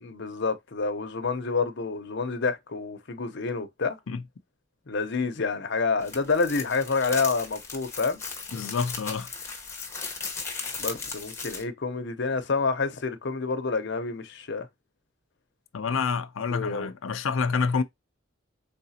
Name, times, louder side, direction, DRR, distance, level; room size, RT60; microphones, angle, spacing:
voice 1, 0.0-4.0 4.9-8.2 10.8-14.7 16.5-16.9, left 4 dB, 60° left, 0.8 m, -28 dB
sound 1, 6.0-11.6, left 4 dB, 15° left, 1.0 m, -37 dB
voice 2, 8.5-9.3 15.7-17.8, left 5 dB, 85° left, 0.5 m, -28 dB
4.7 x 3.8 x 2.8 m
head